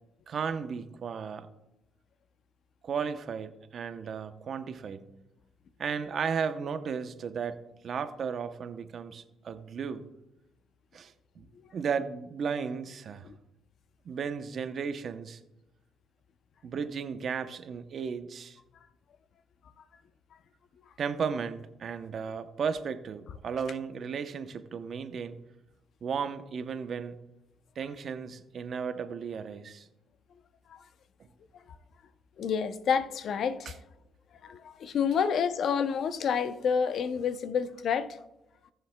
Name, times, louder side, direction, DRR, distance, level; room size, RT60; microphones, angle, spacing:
voice 1, 0.3-1.5 2.8-5.0 5.8-10.0 10.9-11.5 11.7-13.3 14.0-15.4 16.6-18.6 21.0-25.4 26.0-27.2 27.8-29.9, right 6 dB, 55° right, 0.7 m, -34 dB
voice 2, 32.4-33.8 34.4-38.1, left 7 dB, 65° left, 0.6 m, -29 dB
18.0 x 6.8 x 2.2 m
cardioid pair, 90°, 0 cm